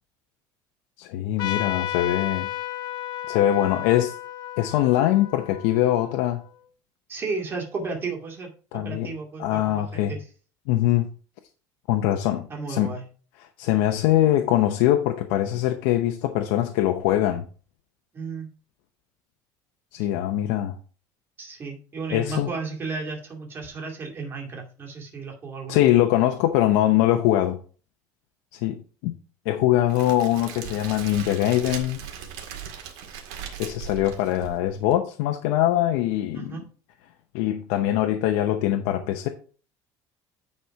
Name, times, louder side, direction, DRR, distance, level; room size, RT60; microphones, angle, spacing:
voice 1, 1.0-2.5 3.3-4.1 4.6-6.4 8.7-9.1 9.4-10.1 10.7-11.1 11.9-12.9 13.6-17.5 19.9-20.8 22.1-22.5 25.7-27.6 28.5-29.2 29.5-32.0 33.6-36.6 37.3-39.3, left 13 dB, 90° left, 0.8 m, -22 dB
Trumpet, 1.4-6.5, left 12 dB, 60° left, 0.7 m, -33 dB
voice 2, 7.1-8.5 8.8-10.3 12.5-13.0 18.1-18.5 21.4-25.9 36.3-36.6, right 4 dB, 25° right, 2.4 m, -33 dB
Crackle, 29.9-34.9, right 8 dB, 85° right, 1.9 m, -38 dB
9.6 x 4.3 x 4.7 m
cardioid pair, 150°, 8 cm